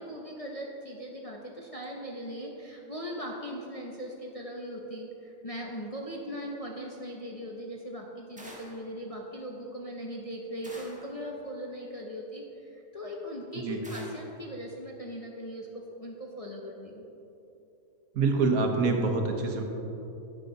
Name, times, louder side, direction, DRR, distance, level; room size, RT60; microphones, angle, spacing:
voice 1, 0.0-17.0, equal, 30° left, -2 dB, 0.7 m, -39 dB
sound 1, 8.4-8.9 10.6-11.2 13.8-14.4, right 1 dB, 5° right, 1.1 m, -47 dB
voice 2, 18.1-19.6, right 3 dB, 70° right, 3 dB, 1.4 m, -25 dB
10.5 x 9.0 x 3.9 m, 2.9 s
omnidirectional pair, 1.6 m